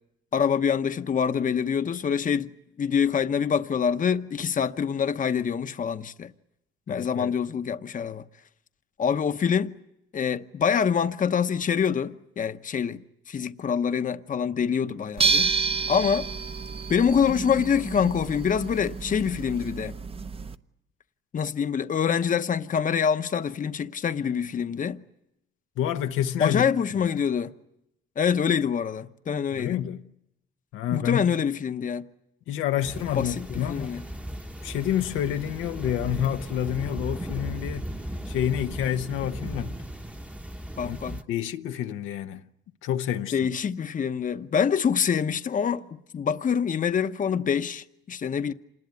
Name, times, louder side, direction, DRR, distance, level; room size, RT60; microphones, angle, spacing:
voice 1, 0.3-2.5 2.8-6.3 6.9-8.2 9.0-9.7 10.1-15.5 15.9-16.3 16.9-19.9 21.3-25.0 26.4-27.5 28.2-29.8 30.9-32.1 33.1-34.0 40.8-41.2 43.3-45.9 46.1-48.5, left 7 dB, 40° left, 0.9 m, -25 dB
voice 2, 6.9-7.4 25.8-26.7 27.0-27.2 29.5-30.1 30.7-31.3 32.5-34.0 34.6-37.9 38.3-39.7 40.8-42.4 42.8-43.4, left 10 dB, 90° left, 0.9 m, -28 dB
sound 1, 15.2-20.6, right 5 dB, 30° right, 0.9 m, -29 dB
sound 2, 32.8-41.2, right 1 dB, 5° right, 1.1 m, -36 dB
27.0 x 20.0 x 9.5 m
cardioid pair, 90°, 20 cm